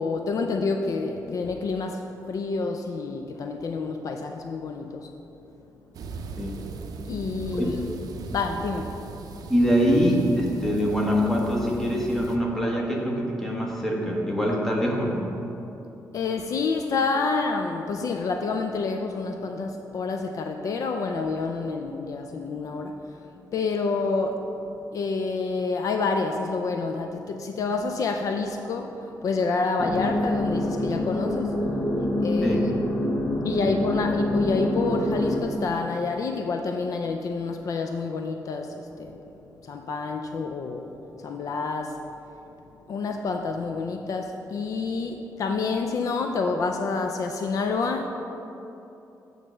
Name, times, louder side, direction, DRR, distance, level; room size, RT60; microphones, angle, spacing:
voice 1, 0.0-5.1 7.1-7.8 8.3-9.0 16.1-24.5 24.9-32.7 33.4-39.2 39.6-40.9 41.2-42.0 42.9-48.1, left 4 dB, 55° left, 5 dB, 0.4 m, -28 dB
sound 1, 5.9-12.4, right 4 dB, 70° right, 0.5 m, -38 dB
voice 2, 9.5-15.4 32.4-32.7 33.6-33.8, equal, 5° left, -2 dB, 1.1 m, -24 dB
sound 2, 29.8-35.4, left 1 dB, 35° left, 0.8 m, -26 dB
8.8 x 3.3 x 6.2 m, 3.0 s
cardioid pair, 120°, 7 cm